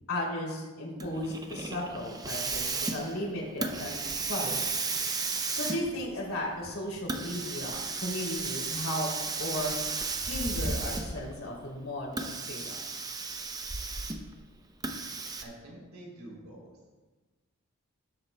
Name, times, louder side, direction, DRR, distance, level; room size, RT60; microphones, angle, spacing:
voice 1, 0.1-4.0 4.3-4.7 5.5-9.1 9.4-9.7 10.2-12.8, left 1 dB, 70° left, -2 dB, 2.9 m, -35 dB
Hiss, 1.0-11.3 12.1-14.3 14.8-15.4, right 4 dB, 15° right, 0.6 m, -34 dB
voice 2, 15.4-16.7, right 1 dB, 65° right, -3 dB, 3.1 m, -47 dB
16.5 x 8.0 x 2.2 m, 1.3 s
head